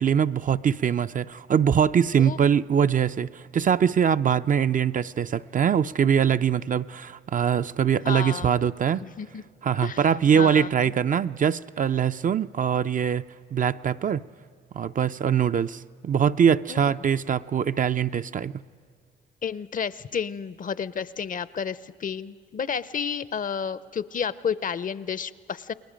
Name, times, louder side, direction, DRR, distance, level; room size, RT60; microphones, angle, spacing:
voice 1, 0.0-9.0 9.6-13.2 13.5-14.2 14.7-18.5, right 8 dB, 40° right, 11 dB, 0.5 m, -23 dB
voice 2, 8.0-8.5 9.0-9.4 9.8-10.0 10.3-10.7 16.7-16.8 19.4-25.7, left 7 dB, 40° left, 17 dB, 0.6 m, -31 dB
29.0 x 21.0 x 5.1 m, 2.1 s
supercardioid pair, 70°, 21 cm